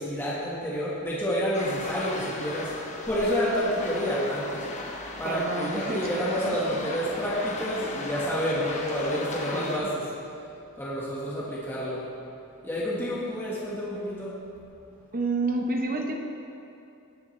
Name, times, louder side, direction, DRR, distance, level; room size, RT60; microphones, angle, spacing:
voice 1, 0.0-2.7 3.1-4.7 5.2-10.0 10.8-12.1 12.6-14.4, equal, 10° left, -7 dB, 1.5 m, -29 dB
sound 1, 1.5-9.8, left 2 dB, 35° left, 1.0 m, -37 dB
voice 2, 5.2-6.2 9.5-9.9 15.1-16.1, right 2 dB, 40° right, 2 dB, 1.0 m, -29 dB
18.5 x 7.2 x 3.2 m, 2.7 s
head